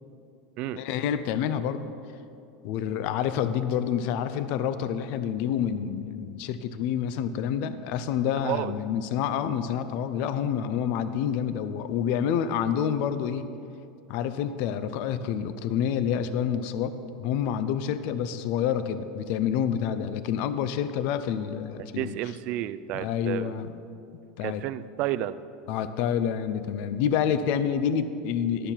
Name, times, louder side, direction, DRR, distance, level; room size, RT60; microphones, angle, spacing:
voice 1, 0.8-1.9 2.6-13.5 14.1-22.2 22.9-23.8 24.4-24.6 25.7-28.7, left 8 dB, 50° left, 12 dB, 0.5 m, -28 dB
voice 2, 8.3-8.7 22.0-23.6 24.4-25.4, right 14 dB, 45° right, 15 dB, 0.3 m, -31 dB
11.5 x 6.8 x 5.7 m, 2.6 s
supercardioid pair, 160°, 3 cm